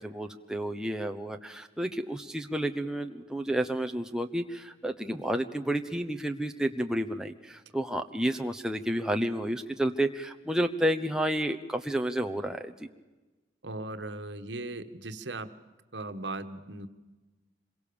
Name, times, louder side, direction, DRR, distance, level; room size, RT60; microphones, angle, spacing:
voice 1, 0.0-12.9, right 1 dB, 5° right, 4 dB, 1.0 m, -31 dB
voice 2, 13.6-15.5 15.9-16.9, right 2 dB, 90° right, 9 dB, 1.4 m, -38 dB
26.0 x 22.5 x 7.0 m, 1.2 s
head